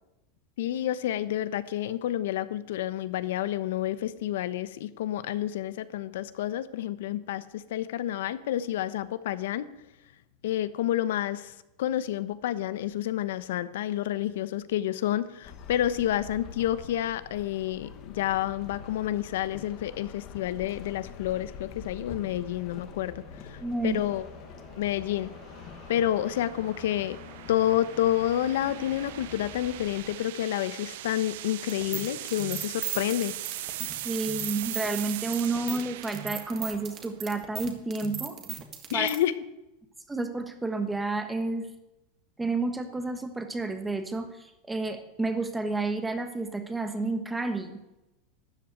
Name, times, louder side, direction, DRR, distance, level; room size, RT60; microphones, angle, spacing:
voice 1, 0.6-9.7 10.4-11.5 11.8-23.6 23.8-24.2 24.8-25.3 25.9-27.2 27.5-33.3 38.9-39.3, left 12 dB, 75° left, 14 dB, 1.0 m, -29 dB
sound 1, 15.4-30.2, left 7 dB, 30° left, 1.4 m, -46 dB
sound 2, 21.2-37.4, right 16 dB, 60° right, 0.6 m, -41 dB
voice 2, 23.6-24.0 34.0-38.4 38.9-39.1 40.1-41.7 42.4-47.8, right 3 dB, 5° right, 8 dB, 1.3 m, -30 dB
sound 3, 31.7-39.2, right 8 dB, 25° right, 1.7 m, -37 dB
13.0 x 11.0 x 9.1 m, 0.93 s
supercardioid pair, 170°, 0 cm